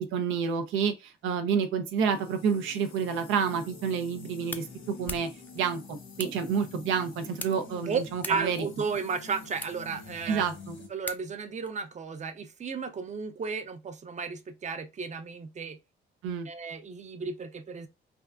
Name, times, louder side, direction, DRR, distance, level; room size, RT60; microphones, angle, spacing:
voice 1, 0.0-5.3 5.5-8.6 10.3-10.8 16.2-16.5, right 6 dB, 90° right, 0.6 m, -29 dB
sound 1, 2.0-10.9, left 4 dB, 75° left, 1.2 m, -47 dB
sound 2, 3.9-11.7, left 2 dB, 10° left, 0.4 m, -45 dB
voice 2, 7.7-10.5 10.9-15.8 16.5-17.9, right 5 dB, 35° right, 0.6 m, -34 dB
3.5 x 2.4 x 2.2 m
cardioid pair, 90°, 20 cm